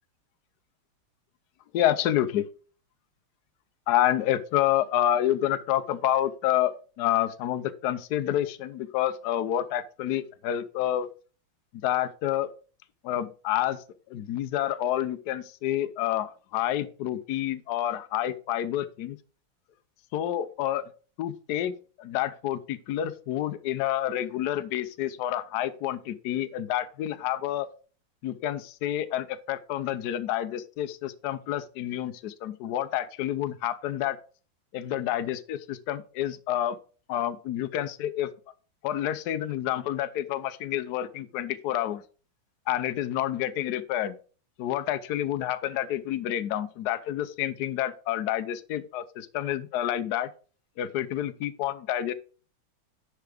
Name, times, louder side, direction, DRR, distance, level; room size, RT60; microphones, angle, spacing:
voice 1, 1.7-2.5 3.9-11.1 11.8-12.5 13.0-13.8 14.1-19.2 20.1-20.8 21.2-21.7 22.0-27.7 28.2-34.2 34.7-36.8 37.1-38.3 38.8-42.0 42.7-44.1 44.6-50.3 50.8-52.1, left 12 dB, 65° left, 11 dB, 1.0 m, -28 dB
10.5 x 4.7 x 4.9 m, 0.38 s
omnidirectional pair, 2.3 m